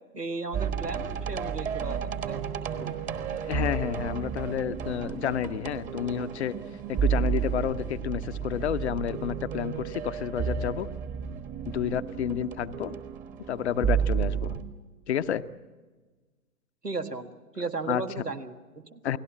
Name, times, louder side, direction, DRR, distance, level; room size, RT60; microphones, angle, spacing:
voice 1, 0.1-2.4 2.8-3.0 16.8-19.0, right 3 dB, 85° right, 7 dB, 1.8 m, -35 dB
sound 1, 0.5-14.6, right 7 dB, 15° right, 1.3 m, -32 dB
voice 2, 3.5-6.5 6.9-10.9 11.6-12.9 13.5-14.6 15.1-15.4 17.9-18.0 19.0-19.2, left 9 dB, 45° left, 12 dB, 0.9 m, -30 dB
29.0 x 18.5 x 7.4 m, 1.3 s
figure-of-eight pair, 115°, 46 cm